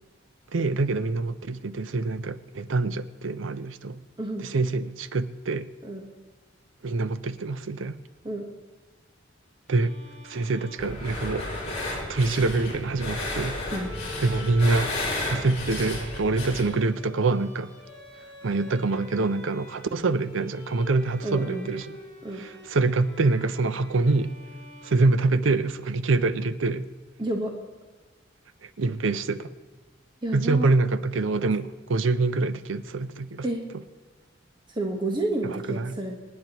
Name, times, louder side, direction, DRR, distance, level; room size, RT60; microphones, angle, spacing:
voice 1, 0.5-4.0 4.4-5.7 6.8-8.0 9.7-10.0 10.2-11.5 12.1-13.6 14.2-14.9 15.3-17.7 18.4-22.0 22.3-24.3 24.8-26.9 28.6-29.5 30.3-33.4 35.4-35.9, right 3 dB, 85° right, 13 dB, 0.6 m, -25 dB
Bowed string instrument, 9.7-25.6, left 2 dB, 5° left, 3.8 m, -47 dB
sound 1, 10.8-16.7, left 1 dB, 35° left, 4.2 m, -32 dB
voice 2, 21.2-21.7 22.2-22.4 27.2-27.5 30.2-30.7 33.4-33.6 34.7-36.1, right 2 dB, 25° right, 1 dB, 1.2 m, -30 dB
26.5 x 9.4 x 3.0 m, 1.3 s
head